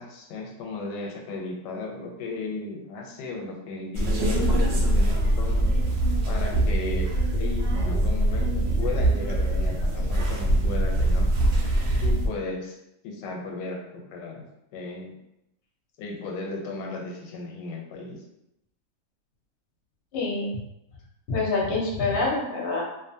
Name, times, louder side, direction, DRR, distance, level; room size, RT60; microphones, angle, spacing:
voice 1, 0.0-5.7 6.3-7.1 7.3-11.3 12.0-12.8 13.0-14.4 14.7-15.1 16.0-18.2, left 3 dB, 90° left, 1 dB, 1.2 m, -35 dB
sound 1, 3.9-12.3, right 1 dB, 80° right, 0.5 m, -23 dB
voice 2, 20.1-20.5 21.3-22.8, left 3 dB, 50° left, -3 dB, 0.7 m, -26 dB
2.6 x 2.5 x 2.6 m, 0.85 s
omnidirectional pair, 1.8 m